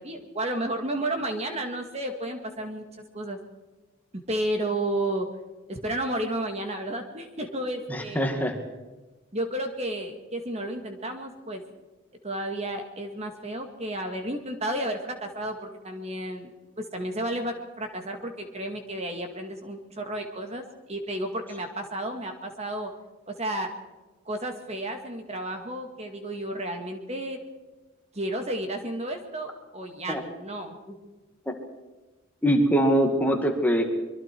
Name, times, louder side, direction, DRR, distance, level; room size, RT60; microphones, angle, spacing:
voice 1, 0.0-2.9 3.1-3.4 4.1-5.3 5.7-8.2 9.3-11.6 12.2-16.5 16.8-22.9 23.3-23.7 24.3-27.4 28.1-30.8, right 1 dB, 30° right, 5 dB, 2.1 m, -32 dB
voice 2, 7.9-8.6 30.1-30.2 31.5-31.6 32.4-33.8, equal, 10° left, 3 dB, 2.0 m, -23 dB
25.0 x 22.5 x 4.6 m, 1.2 s
head